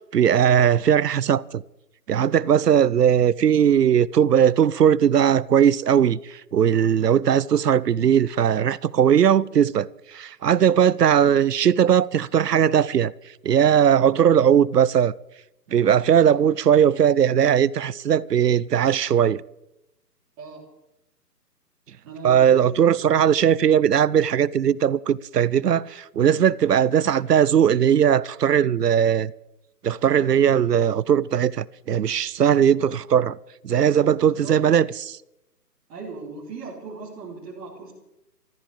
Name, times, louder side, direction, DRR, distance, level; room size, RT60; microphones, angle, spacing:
voice 1, 0.1-1.6 2.1-13.1 13.4-15.1 15.7-19.4 22.2-29.3 29.8-33.4 33.6-35.2, right 9 dB, 70° right, 0.8 m, -19 dB
voice 2, 22.1-23.3 34.2-34.5 35.9-37.9, right 4 dB, 15° right, 3.6 m, -38 dB
14.0 x 13.5 x 7.6 m
hypercardioid pair, 165°, 49 cm